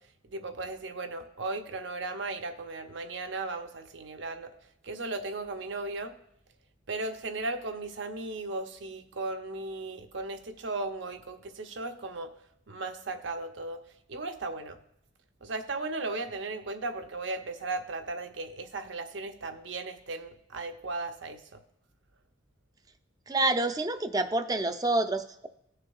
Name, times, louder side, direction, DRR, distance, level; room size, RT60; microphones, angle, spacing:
voice 1, 0.3-4.5 4.8-6.1 6.9-12.3 12.7-13.8 14.1-14.8 15.4-21.6, right 3 dB, 65° right, 7 dB, 0.8 m, -36 dB
voice 2, 23.3-25.5, right 2 dB, 20° right, 9 dB, 0.4 m, -28 dB
17.5 x 6.6 x 2.4 m, 0.79 s
head